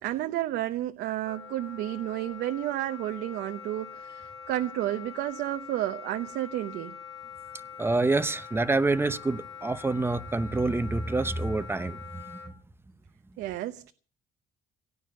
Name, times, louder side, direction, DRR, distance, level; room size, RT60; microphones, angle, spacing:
voice 1, 0.0-7.0 13.4-13.9, right 14 dB, 80° right, 0.9 m, -31 dB
Wind instrument woodwind instrument, 1.2-12.5, left 7 dB, 25° left, 3.2 m, -44 dB
voice 2, 7.8-12.4, right 3 dB, 15° right, 0.9 m, -27 dB
17.5 x 9.8 x 7.8 m
cardioid pair, 110°, 17 cm